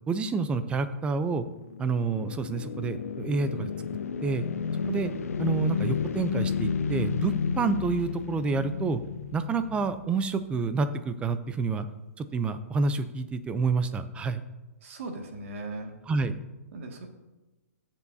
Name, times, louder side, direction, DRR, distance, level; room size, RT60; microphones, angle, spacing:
voice 1, 0.1-1.4 1.8-3.7 4.2-4.4 4.9-5.1 5.4-9.0 9.3-11.9 12.2-14.4 16.1-16.4, right 4 dB, 15° right, 11 dB, 0.6 m, -28 dB
sound 1, 1.3-10.5, left 6 dB, 75° left, 0.7 m, -32 dB
voice 2, 14.8-16.0 16.7-17.1, right 2 dB, 60° right, 2 dB, 2.2 m, -38 dB
18.5 x 7.2 x 2.8 m, 1.1 s
hypercardioid pair, 140°, 8 cm